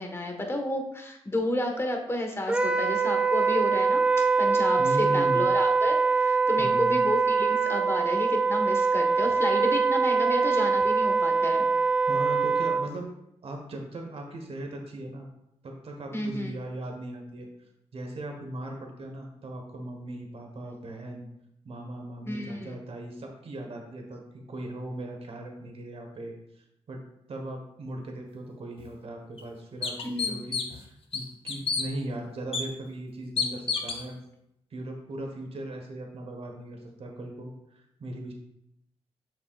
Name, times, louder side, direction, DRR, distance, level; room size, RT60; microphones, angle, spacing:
voice 1, 0.0-4.0 4.4-11.7 16.1-16.5 22.2-22.7 30.0-30.4, left 1 dB, 20° left, 2 dB, 1.4 m, -31 dB
Wind instrument woodwind instrument, 2.5-12.9, right 4 dB, 10° right, 0.3 m, -23 dB
voice 2, 4.8-5.5 6.6-7.0 12.1-13.1 13.4-15.3 15.6-17.5 17.9-21.3 21.6-27.0 27.3-34.2 34.7-38.3, right 1 dB, 60° right, 2 dB, 1.3 m, -38 dB
sound 1, 28.8-28.9 29.4-29.5 29.8-30.8 31.1-31.9 32.5-32.6 33.4-34.0, left 5 dB, 55° left, 0.9 m, -29 dB
7.3 x 6.0 x 2.4 m, 0.80 s
cardioid pair, 70°, 11 cm